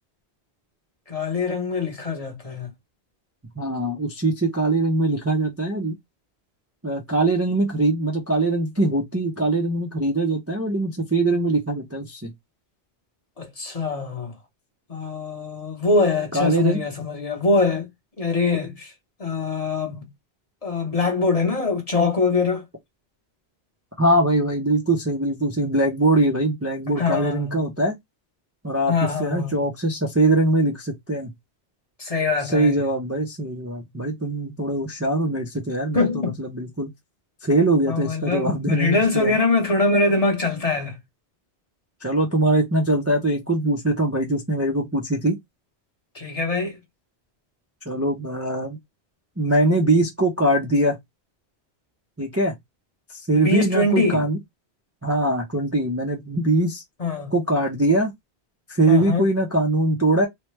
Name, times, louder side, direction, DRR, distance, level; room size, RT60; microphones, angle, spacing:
voice 1, 1.1-2.7 13.4-14.3 14.9-17.9 18.2-18.9 19.2-20.1 20.6-22.6 27.0-27.6 28.9-29.6 32.0-32.7 34.0-34.1 35.9-36.3 37.9-41.0 46.1-46.8 53.3-54.2 57.0-57.3 58.9-59.2, left 3 dB, 35° left, 0.9 m, -23 dB
voice 2, 3.6-5.9 6.8-12.3 16.3-16.8 24.0-28.0 28.6-28.9 29.2-31.3 32.4-36.9 37.4-39.3 42.0-45.4 47.9-48.8 49.4-51.0 52.2-52.5 53.1-54.4 55.0-56.8 57.3-58.1 58.7-60.3, right 2 dB, 15° right, 0.6 m, -22 dB
3.1 x 2.2 x 3.1 m
omnidirectional pair, 1.1 m